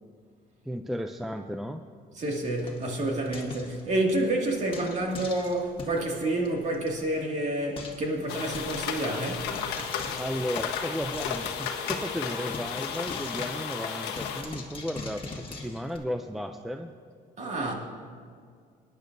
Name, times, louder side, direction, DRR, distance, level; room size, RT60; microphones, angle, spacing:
voice 1, 0.7-1.8 10.2-16.9, equal, ahead, 0.4 m, -34 dB
Frying (food), 2.2-4.2 4.7-6.0 6.4-6.5 6.7-6.9 7.2-7.3 7.8-8.1 8.5-9.0 9.5-12.2 12.5-16.0, left 3 dB, 30° left, 1.6 m, -42 dB
voice 2, 2.2-9.5 17.4-17.7, right 1 dB, 45° right, 2.1 m, -29 dB
sound 1, 8.3-14.4, left 7 dB, 85° left, 1.1 m, -33 dB
20.5 x 10.0 x 2.6 m
cardioid pair, 110°, 17 cm